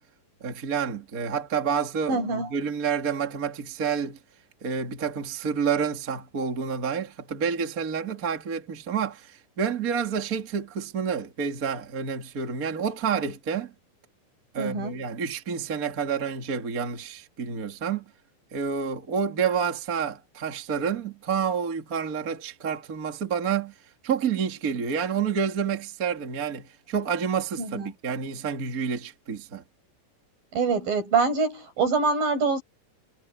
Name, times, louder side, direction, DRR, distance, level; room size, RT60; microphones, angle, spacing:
voice 1, 0.4-4.2 4.6-13.7 14.5-18.1 18.5-23.7 24.0-29.6, right 6 dB, 30° right, 2.1 m, -29 dB
voice 2, 2.1-2.5 14.6-14.9 27.6-27.9 30.5-32.6, right 4 dB, 65° right, 8.2 m, -25 dB
omnidirectional pair, 4.3 m